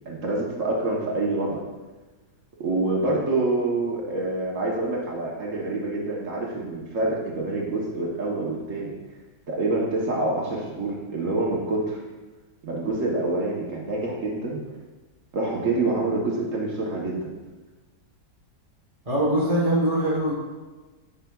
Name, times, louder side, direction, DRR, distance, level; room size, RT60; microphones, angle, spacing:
voice 1, 0.1-1.6 2.6-9.0 9.5-12.0 12.6-14.6 15.3-17.3, right 2 dB, 55° right, -3 dB, 1.3 m, -26 dB
voice 2, 19.0-20.3, right 1 dB, 25° right, -7 dB, 0.9 m, -22 dB
9.2 x 5.0 x 2.3 m, 1.2 s
omnidirectional pair, 1.7 m